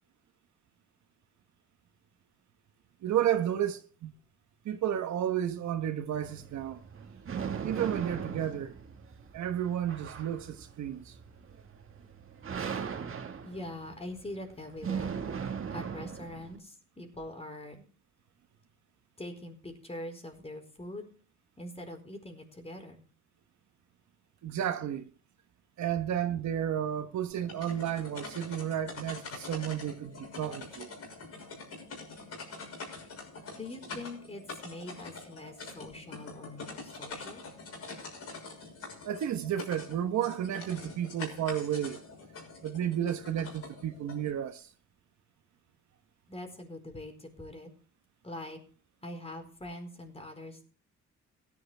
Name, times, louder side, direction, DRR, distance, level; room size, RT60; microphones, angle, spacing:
voice 1, 3.0-4.1 4.6-6.8 7.6-8.7 9.3-11.1 24.4-25.1 25.8-30.9 39.0-42.0 42.6-44.7, right 10 dB, 70° right, 1.3 m, -32 dB
loud harsh clipped industrial metallic smash, 6.1-16.6, right 6 dB, 45° right, 1.8 m, -39 dB
voice 2, 13.4-15.2 15.7-17.8 19.2-21.1 21.6-23.0 33.6-37.4 46.3-47.7 48.2-48.6 49.0-50.6, left 1 dB, 20° left, 4.5 m, -43 dB
sound 1, 27.3-44.3, left 3 dB, 55° left, 6.4 m, -45 dB
16.5 x 11.0 x 3.4 m
cardioid pair, 90°, 30 cm